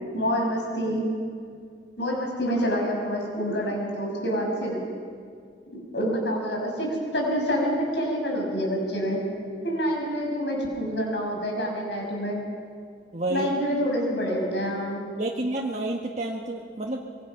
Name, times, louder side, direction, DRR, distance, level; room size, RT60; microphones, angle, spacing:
voice 1, 0.1-1.0 2.0-4.8 5.7-9.2 9.6-12.4 13.3-15.1, equal, 85° left, 0 dB, 6.0 m, -27 dB
voice 2, 13.1-13.5 15.2-17.0, right 2 dB, 40° right, -2 dB, 1.5 m, -29 dB
25.5 x 24.0 x 5.9 m, 2.2 s
head